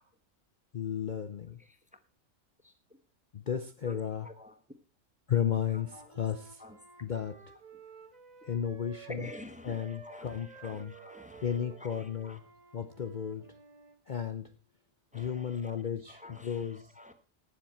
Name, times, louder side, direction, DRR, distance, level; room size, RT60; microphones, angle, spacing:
voice 1, 0.7-1.6 3.3-4.3 5.3-6.6 7.0-7.4 8.5-9.3 9.6-10.9 11.4-12.4 12.7-13.5 14.1-14.5 15.1-16.9, left 9 dB, 45° left, 0.7 m, -34 dB
voice 2, 4.2-4.6 5.7-6.1 6.6-6.8 9.1-12.4 15.1-15.8 16.1-17.1, left 1 dB, 5° right, 1.0 m, -48 dB
Wind instrument woodwind instrument, 5.5-9.5 9.7-14.0, right 5 dB, 30° right, 1.7 m, -53 dB
18.5 x 7.5 x 4.4 m
omnidirectional pair, 1.4 m